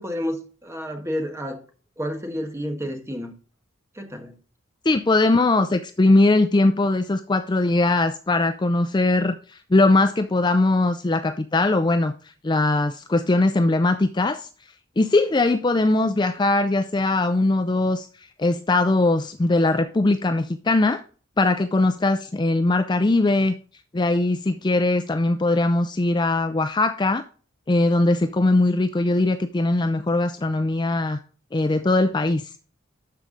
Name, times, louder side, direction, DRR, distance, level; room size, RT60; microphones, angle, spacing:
voice 1, 0.0-1.6 2.0-3.3 3.9-4.4, equal, 15° right, 1.5 m, -30 dB
voice 2, 4.9-12.1 12.4-14.5 15.0-18.1 18.4-21.0 21.4-23.5 23.9-27.2 27.7-31.2 31.5-32.5, left 2 dB, 20° left, 0.4 m, -20 dB
12.5 x 4.7 x 3.8 m
head